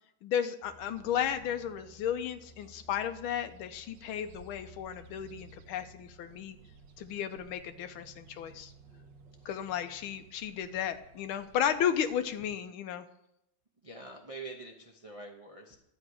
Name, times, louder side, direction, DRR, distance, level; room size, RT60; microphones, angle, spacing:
voice 1, 0.2-6.6 7.0-8.7 9.4-13.0, left 9 dB, 85° left, 8 dB, 1.5 m, -34 dB
sound 1, 0.6-12.4, right 2 dB, 60° right, 1.5 m, -56 dB
voice 2, 10.5-10.8 12.5-12.6 13.8-15.8, right 3 dB, 35° right, 0 dB, 0.5 m, -46 dB
11.5 x 8.7 x 4.8 m, 0.80 s
omnidirectional pair, 2.3 m